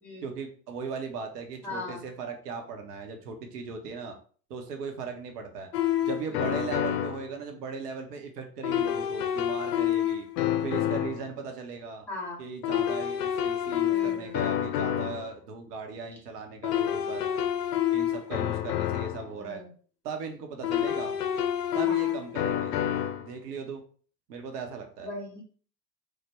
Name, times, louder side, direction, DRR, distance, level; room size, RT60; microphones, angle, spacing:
voice 1, 0.2-4.2 4.5-5.7 6.0-10.3 10.6-12.1 12.4-17.4 17.9-19.6 20.0-21.2 21.7-22.8 23.2-23.8 24.3-25.1, right 5 dB, 70° right, 5 dB, 0.7 m, -38 dB
voice 2, 1.6-2.0 6.3-6.6 12.1-12.4 13.9-14.4 19.4-19.7 21.8-22.1 25.0-25.4, left 2 dB, 5° left, -3 dB, 0.3 m, -39 dB
sound 1, 5.7-7.3 8.6-11.3 12.6-15.3 16.6-19.3 20.6-23.3, left 11 dB, 70° left, 0.5 m, -28 dB
3.3 x 2.1 x 2.9 m, 0.43 s
figure-of-eight pair, 85°, 50 cm